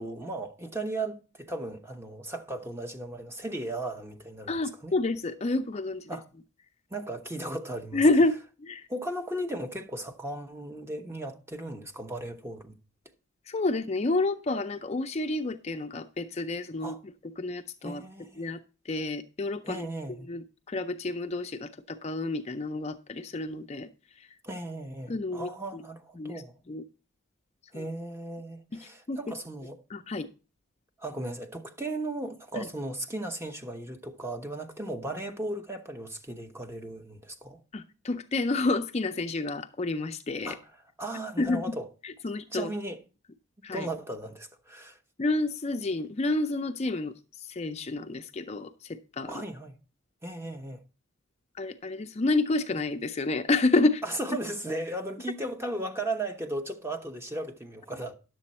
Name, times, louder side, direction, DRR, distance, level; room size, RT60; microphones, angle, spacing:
voice 1, 0.0-4.9 6.1-6.3 6.9-8.0 8.9-12.8 16.8-17.0 17.8-18.5 19.6-20.3 24.4-26.5 27.7-29.8 31.0-37.6 40.4-40.7 41.0-41.9 42.5-43.0 43.7-45.0 49.3-49.7 50.2-50.8 54.0-58.1, right 1 dB, 10° right, 0.9 m, -36 dB
voice 2, 4.5-6.1 7.9-8.9 13.5-16.9 17.4-18.0 18.4-18.6 18.9-19.9 20.3-23.9 24.2-24.3 25.1-25.8 26.2-26.4 26.7-26.8 27.7-27.9 28.7-28.8 29.1-29.2 29.9-30.3 32.6-32.7 37.7-40.6 41.4-41.6 42.0-42.7 43.6-43.9 45.2-49.4 51.6-54.0, left 2 dB, 30° left, 0.4 m, -29 dB
10.5 x 7.6 x 4.1 m
head